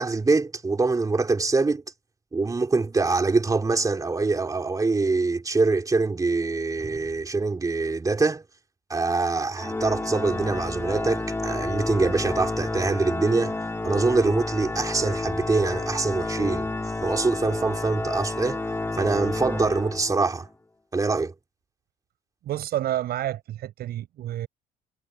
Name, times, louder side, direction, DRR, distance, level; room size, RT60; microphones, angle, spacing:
voice 1, 0.0-1.8 2.3-8.4 8.9-13.6 13.8-16.7 17.0-18.6 19.0-20.5 20.9-21.3, right 3 dB, 20° right, 3.3 m, -24 dB
Organ, 9.6-20.4, left 2 dB, 15° left, 3.2 m, -30 dB
voice 2, 22.4-24.5, right 13 dB, 70° right, 7.1 m, -29 dB
cardioid pair, 110°, 17 cm